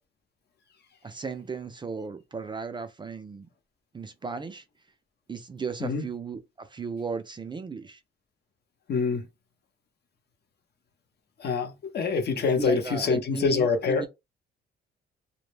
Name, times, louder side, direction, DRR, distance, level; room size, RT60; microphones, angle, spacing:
voice 1, 1.0-3.5 3.9-4.6 5.3-8.0 12.6-14.1, right 4 dB, 25° right, 0.4 m, -35 dB
voice 2, 8.9-9.2 11.4-14.1, left 5 dB, 55° left, 0.7 m, -25 dB
2.1 x 2.1 x 3.2 m
cardioid pair, 90°, 20 cm